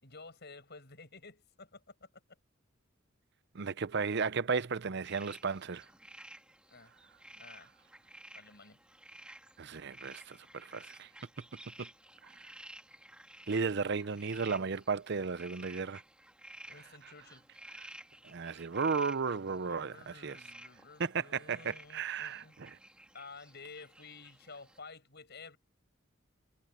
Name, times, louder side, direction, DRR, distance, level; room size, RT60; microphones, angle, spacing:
voice 1, 0.0-2.1 6.7-6.9 7.3-7.7 8.3-8.8 16.7-17.5 19.6-22.6 23.1-25.6, left 4 dB, 55° left, 7.7 m, -52 dB
voice 2, 3.5-5.8 9.6-11.1 11.8-11.9 13.5-16.0 17.8-17.9 18.2-20.4 21.0-22.7, right 5 dB, 55° right, 0.6 m, -34 dB
sound 1, 5.0-24.8, right 1 dB, 5° right, 2.2 m, -54 dB
head